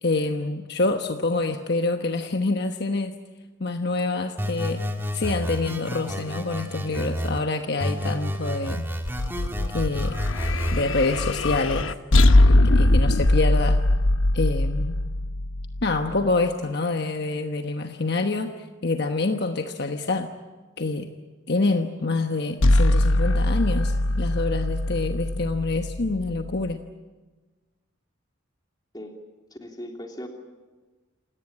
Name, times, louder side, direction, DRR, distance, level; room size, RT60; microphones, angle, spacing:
voice 1, 0.0-3.1 3.6-4.8 5.1-8.9 9.7-10.2 10.7-11.9 12.5-13.8 14.3-15.0 15.8-18.5 18.8-20.3 20.8-21.1 21.5-26.8, left 3 dB, 55° left, 5 dB, 1.2 m, -26 dB
sound 1, 4.4-7.4 7.8-10.8, equal, 10° right, 1.9 m, -30 dB
sound 2, 9.0-16.4 22.6-26.7, left 1 dB, 75° left, 1.0 m, -21 dB
voice 2, 29.5-30.3, equal, 20° left, 2 dB, 3.1 m, -38 dB
28.0 x 18.0 x 8.6 m, 1.3 s
head